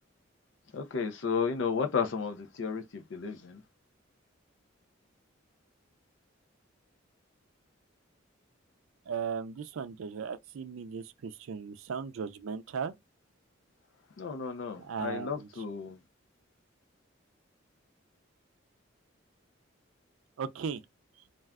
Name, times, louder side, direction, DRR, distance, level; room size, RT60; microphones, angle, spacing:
voice 1, 0.7-3.6 14.2-16.0, left 5 dB, 65° left, 0.4 m, -33 dB
voice 2, 9.1-12.9 14.8-15.5 20.4-20.8, right 6 dB, 85° right, 0.4 m, -37 dB
2.3 x 2.2 x 3.4 m
head